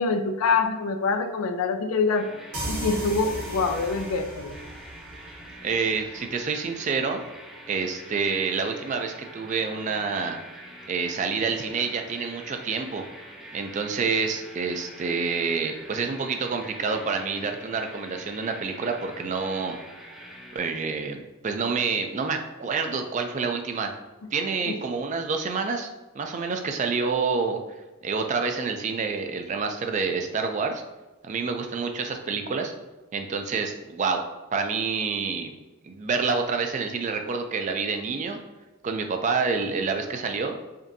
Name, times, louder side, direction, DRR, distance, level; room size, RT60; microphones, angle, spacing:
voice 1, 0.0-2.3 2.7-4.6 24.7-24.8, left 4 dB, 85° left, 8 dB, 0.4 m, -25 dB
sound 1, 2.1-20.6, right 1 dB, ahead, 0.7 m, -45 dB
sound 2, 2.5-6.1, right 1 dB, 90° right, 1.4 m, -36 dB
voice 2, 5.6-7.2 7.7-10.4 10.9-13.0 13.5-19.8 20.5-23.9 24.3-25.9 26.1-27.6 28.0-30.8 31.2-32.7 33.1-34.2 34.5-35.5 35.8-38.4 38.8-40.5, right 5 dB, 35° right, 5 dB, 0.3 m, -28 dB
5.0 x 2.6 x 2.6 m, 1.1 s
head